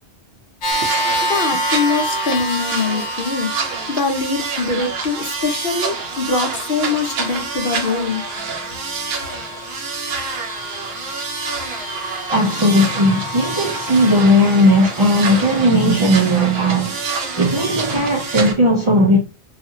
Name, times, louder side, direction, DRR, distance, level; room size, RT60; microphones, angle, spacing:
sound 1, 0.6-18.5, equal, 85° left, 1.0 m, -30 dB
sound 2, 0.7-18.5, right 4 dB, 70° right, 0.8 m, -28 dB
voice 1, 1.3-8.2, left 4 dB, 60° left, 0.8 m, -23 dB
voice 2, 12.3-17.1 17.4-19.2, equal, 40° right, 0.4 m, -16 dB
2.7 x 2.4 x 2.7 m
omnidirectional pair, 1.1 m